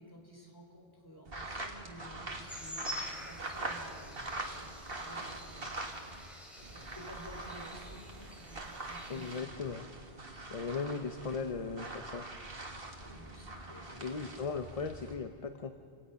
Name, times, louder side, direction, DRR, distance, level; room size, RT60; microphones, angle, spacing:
voice 1, 0.0-5.7 6.7-9.5 10.3-10.9 13.0-14.4, equal, 20° left, 0 dB, 4.0 m, -53 dB
sound 1, 1.3-6.3 6.6-15.1, right 2 dB, 65° right, 2.1 m, -43 dB
sound 2, 2.5-9.4, equal, ahead, 4.1 m, -48 dB
voice 2, 9.1-9.9 10.5-12.2 14.0-15.7, left 5 dB, 40° left, 7 dB, 0.8 m, -37 dB
29.0 x 17.5 x 5.8 m, 2.2 s
omnidirectional pair, 1.0 m